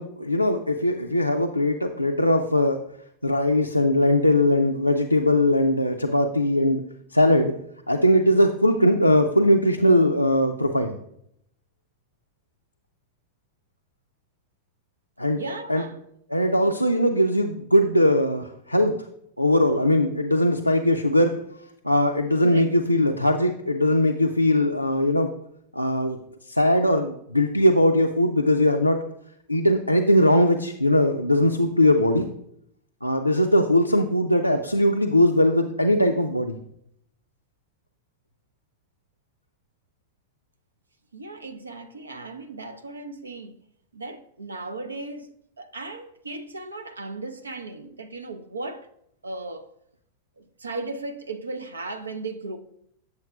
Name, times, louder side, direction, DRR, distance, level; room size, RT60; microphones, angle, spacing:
voice 1, 0.0-2.8 3.2-6.8 7.1-7.5 7.9-11.0 15.2-15.4 15.7-15.8 16.3-19.1 19.4-21.4 21.8-25.3 25.7-26.2 26.5-29.0 29.5-32.3 33.0-36.6, left 1 dB, 90° left, 0.3 m, -20 dB
voice 2, 15.4-16.0 22.4-22.7 41.1-43.6 43.9-48.9 49.2-49.7 50.4-52.6, right 3 dB, 75° right, 0.5 m, -36 dB
7.8 x 6.9 x 2.3 m
figure-of-eight pair, 90°, 0 cm